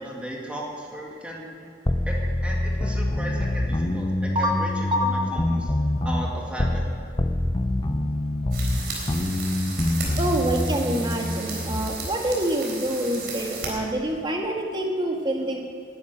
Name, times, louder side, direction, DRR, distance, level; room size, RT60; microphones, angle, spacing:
voice 1, 0.0-1.4 2.1-5.7 6.0-6.9, equal, 5° right, -3 dB, 2.1 m, -35 dB
sound 1, 1.9-6.9 7.2-12.0, left 1 dB, 25° left, 0.7 m, -25 dB
sound 2, 8.5-13.7, right 4 dB, 65° right, 3.8 m, -35 dB
voice 2, 10.2-15.6, right 1 dB, 25° right, 1 dB, 1.8 m, -26 dB
11.5 x 10.5 x 9.6 m, 2.1 s
head